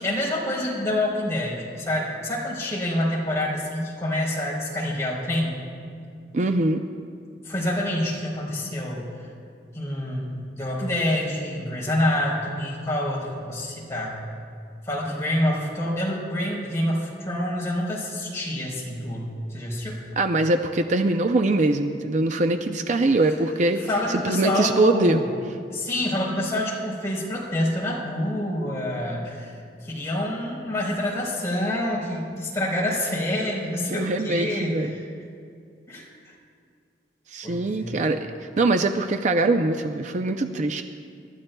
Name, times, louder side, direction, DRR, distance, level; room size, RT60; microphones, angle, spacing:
voice 1, 0.0-5.6 7.4-9.1 9.7-14.2 14.9-20.0 23.8-25.2 25.7-29.6 29.8-35.1 35.9-36.1 37.4-38.0, left 1 dB, 15° left, -5 dB, 3.9 m, -27 dB
voice 2, 6.3-6.8 20.2-23.8 24.1-25.2 33.9-34.9 37.3-38.3 38.6-40.8, right 2 dB, 45° right, 6 dB, 0.5 m, -22 dB
27.5 x 13.0 x 2.3 m, 2.3 s
head